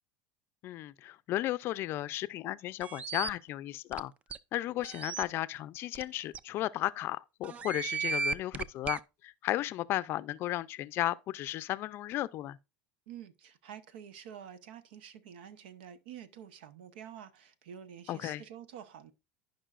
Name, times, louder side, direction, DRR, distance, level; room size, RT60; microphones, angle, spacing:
voice 1, 0.6-4.1 4.5-12.6 18.1-18.4, left 15 dB, 45° left, 0.4 m, -34 dB
sound 1, 2.8-3.3 3.9-4.0 4.3-4.4 4.8-5.2 5.9-6.0 6.3-6.4 7.4-9.0, right 5 dB, 25° right, 0.4 m, -35 dB
voice 2, 13.1-19.1, right 9 dB, 85° right, 1.0 m, -48 dB
15.5 x 5.4 x 2.5 m
supercardioid pair, 125°, 5 cm